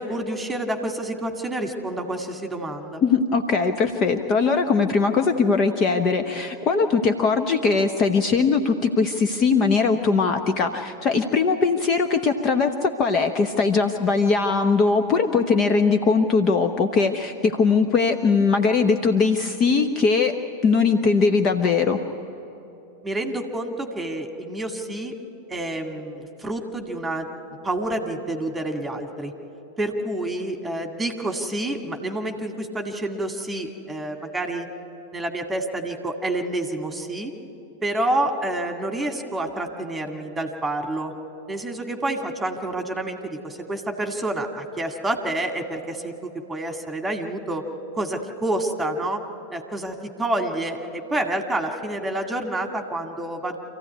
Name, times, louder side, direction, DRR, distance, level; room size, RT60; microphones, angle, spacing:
voice 1, 0.0-3.0 23.0-25.1 25.5-27.3 27.6-29.3 29.8-34.7 35.1-37.3 37.8-41.1 41.5-47.7 47.9-49.2 49.5-53.6, right 1 dB, 10° right, 5 dB, 2.1 m, -28 dB
voice 2, 3.0-20.4 20.6-22.0, left 4 dB, 30° left, 6 dB, 1.0 m, -20 dB
26.5 x 15.5 x 9.5 m, 2.8 s
figure-of-eight pair, 90°, 0 cm